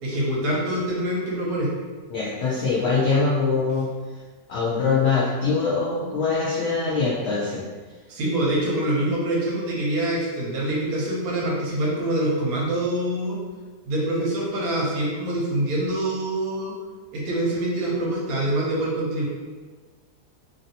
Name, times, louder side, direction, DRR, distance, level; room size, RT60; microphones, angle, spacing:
voice 1, 0.0-1.7 8.1-13.4 13.8-16.7 17.1-19.2, right 1 dB, 70° right, -4 dB, 1.2 m, -25 dB
voice 2, 2.1-3.9 4.5-7.6, left 4 dB, 65° left, -7 dB, 0.7 m, -23 dB
3.1 x 2.6 x 2.7 m, 1.4 s
omnidirectional pair, 1.7 m